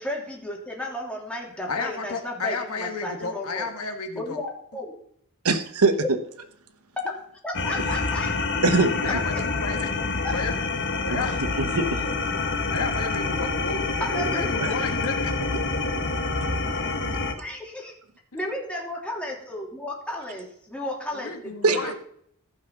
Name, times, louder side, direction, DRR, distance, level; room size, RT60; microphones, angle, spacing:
voice 1, 0.0-3.7 4.1-4.9 7.4-8.3 10.2-10.4 14.0-14.7 17.4-17.9 18.3-21.9, left 1 dB, 5° left, -2 dB, 3.0 m, -33 dB
voice 2, 1.7-4.4 9.0-11.4 12.6-15.3 18.3-18.4 21.2-21.9, left 4 dB, 75° left, 5 dB, 1.6 m, -32 dB
voice 3, 5.4-6.0 8.6-8.9 11.0-11.2 11.6-12.0 14.6-14.7 21.6-21.9, right 3 dB, 80° right, 10 dB, 1.1 m, -22 dB
sound 1, 7.5-17.3, left 3 dB, 55° left, 1.4 m, -27 dB
15.0 x 5.7 x 6.0 m, 0.65 s
head